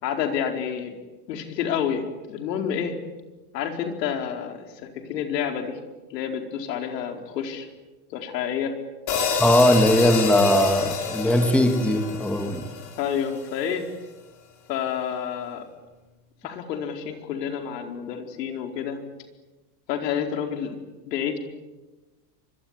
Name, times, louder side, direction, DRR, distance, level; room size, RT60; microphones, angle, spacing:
voice 1, 0.0-1.0 1.3-2.9 3.5-5.8 6.1-7.7 8.1-8.7 13.0-13.8 14.7-15.6 16.4-19.0 19.9-20.7 21.0-21.4, left 8 dB, 80° left, 5 dB, 4.7 m, -29 dB
sound 1, 9.1-13.4, left 5 dB, 40° left, 6.0 m, -28 dB
voice 2, 9.4-12.6, left 1 dB, 5° left, 5 dB, 2.8 m, -19 dB
25.0 x 22.5 x 9.9 m, 1.1 s
supercardioid pair, 130°, 48 cm